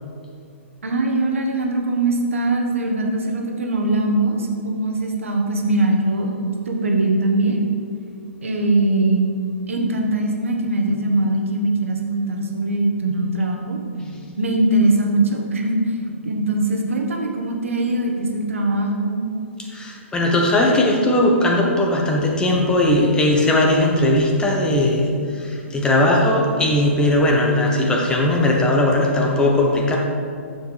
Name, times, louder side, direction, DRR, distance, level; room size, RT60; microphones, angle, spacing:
voice 1, 0.8-6.3 6.7-7.7 8.4-9.3 9.7-13.8 14.4-19.2, right 2 dB, 70° right, 1 dB, 1.2 m, -21 dB
voice 2, 14.0-14.3 19.7-30.0, left 1 dB, 10° left, 0 dB, 0.9 m, -18 dB
9.0 x 7.1 x 3.3 m, 2.3 s
figure-of-eight pair, 120°, 7 cm